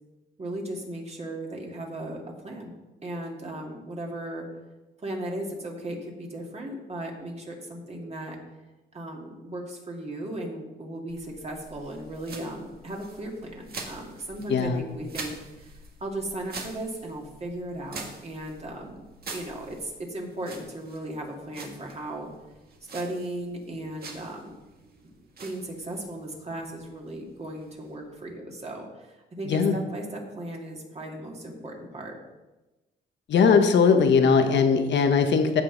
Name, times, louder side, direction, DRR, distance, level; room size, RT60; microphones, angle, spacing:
voice 1, 0.4-2.7 3.0-4.5 5.0-8.4 8.9-15.7 16.0-19.0 19.3-22.3 22.9-24.5 25.4-32.1, right 1 dB, 35° right, 0 dB, 2.3 m, -36 dB
sound 1, 11.1-28.4, right 3 dB, 50° right, 1.9 m, -45 dB
voice 2, 14.5-14.8 29.4-29.8 33.3-35.6, left 5 dB, 65° left, 6 dB, 1.3 m, -20 dB
15.0 x 5.6 x 4.0 m, 1.1 s
cardioid pair, 90°, 20 cm